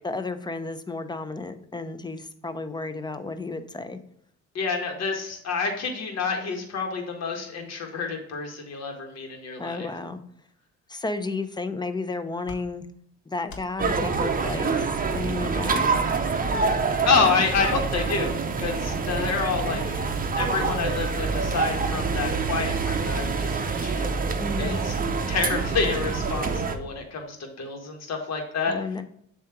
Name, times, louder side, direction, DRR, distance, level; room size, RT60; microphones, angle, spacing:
voice 1, 0.0-4.0 9.6-10.2 10.9-12.9 13.3-16.0 24.4-24.8 28.7-29.0, left 3 dB, 15° left, 10 dB, 0.6 m, -32 dB
voice 2, 4.5-9.9 17.0-20.0 20.3-24.1 24.6-24.9 25.3-28.7, left 4 dB, 60° left, 3 dB, 1.6 m, -28 dB
sound 1, 12.4-12.6 13.4-13.7 14.6-14.8 15.5-15.8 16.5-16.7 17.1-17.3 18.2-18.4 19.3-19.5, left 3 dB, 75° left, 1.1 m, -43 dB
sound 2, 13.8-26.8, right 4 dB, 30° right, 0.8 m, -26 dB
7.2 x 2.9 x 5.9 m, 0.70 s
cardioid pair, 90°, 30 cm